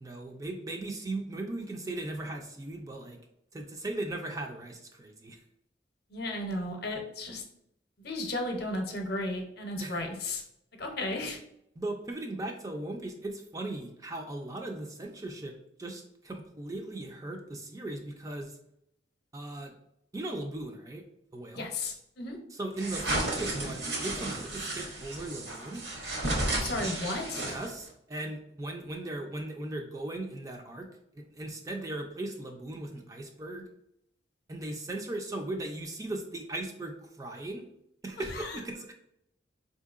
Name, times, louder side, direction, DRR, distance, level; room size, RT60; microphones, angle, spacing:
voice 1, 0.0-3.2 3.5-5.4 9.8-10.0 11.8-15.5 15.8-18.6 19.3-19.7 20.1-21.0 21.3-21.7 22.5-25.8 27.4-30.9 31.1-33.7 34.5-37.6 38.0-38.9, right 2 dB, 20° right, 3 dB, 0.3 m, -38 dB
voice 2, 6.1-7.4 8.0-10.4 10.8-11.4 21.5-22.4 26.5-27.4 38.3-38.6, left 2 dB, 55° left, 3 dB, 0.6 m, -34 dB
sound 1, 22.8-27.9, right 2 dB, 65° right, 0.9 m, -33 dB
4.4 x 2.7 x 2.4 m, 0.78 s
head